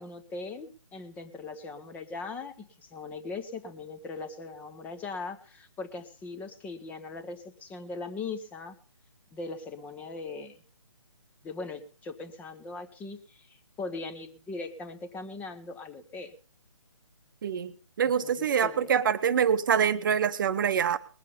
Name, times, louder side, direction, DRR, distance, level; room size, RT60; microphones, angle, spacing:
voice 1, 0.0-8.8 9.3-10.6 11.4-16.3 18.2-18.9, left 3 dB, 10° left, 8 dB, 0.8 m, -40 dB
voice 2, 17.4-17.7 18.0-21.0, right 7 dB, 40° right, 14 dB, 0.9 m, -25 dB
20.0 x 7.5 x 5.5 m, 0.39 s
figure-of-eight pair, 145°, 16 cm